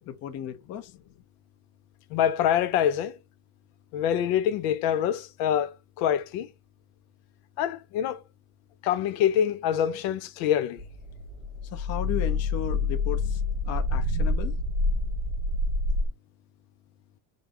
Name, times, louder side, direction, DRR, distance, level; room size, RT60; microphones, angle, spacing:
voice 1, 0.1-0.9 11.7-13.4 13.7-14.6, left 9 dB, 35° left, 0.5 m, -35 dB
voice 2, 2.1-3.2 3.9-6.5 7.6-8.2 8.8-10.8, left 10 dB, 90° left, 0.7 m, -25 dB
sound 1, 10.8-16.1, left 2 dB, 10° right, 0.8 m, -27 dB
5.2 x 2.0 x 3.6 m
cardioid pair, 150°, 49 cm